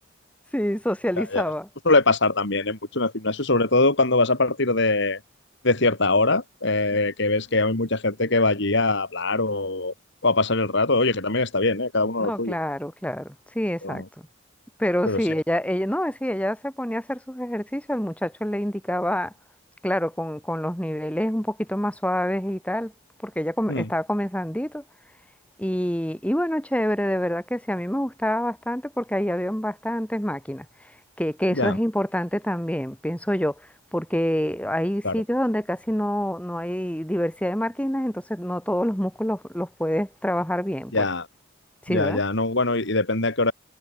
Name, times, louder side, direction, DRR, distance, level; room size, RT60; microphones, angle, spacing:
voice 1, 0.5-1.7 12.2-14.0 14.8-19.3 19.8-22.9 23.2-24.8 25.6-30.7 31.2-33.6 33.9-41.1 41.9-42.2, equal, 5° left, 7.0 m, -26 dB
voice 2, 1.9-5.2 5.6-9.9 10.2-12.6 13.8-14.0 15.1-15.2 23.7-23.9 31.6-31.8 35.0-35.1 40.9-41.3 41.9-43.5, left 2 dB, 60° left, 3.6 m, -22 dB
head